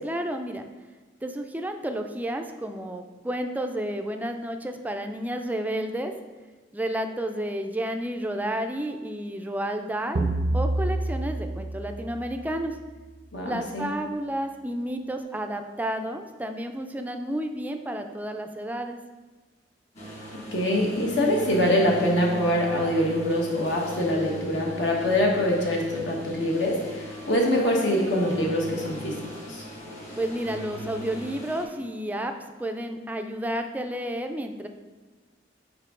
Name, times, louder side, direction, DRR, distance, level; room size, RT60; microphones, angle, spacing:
voice 1, 0.0-0.7 1.2-6.1 6.7-10.2 10.5-12.8 13.4-19.0 30.2-32.3 32.6-34.7, right 1 dB, 10° right, 5 dB, 0.4 m, -31 dB
sound 1, 10.2-12.9, right 2 dB, 85° right, 0.7 m, -28 dB
voice 2, 13.3-13.9 20.5-29.1 29.5-29.6, left 1 dB, 70° left, -1 dB, 1.4 m, -24 dB
sound 2, 19.9-31.6, right 1 dB, 40° left, 1.8 m, -39 dB
6.7 x 5.2 x 3.7 m, 1.3 s
head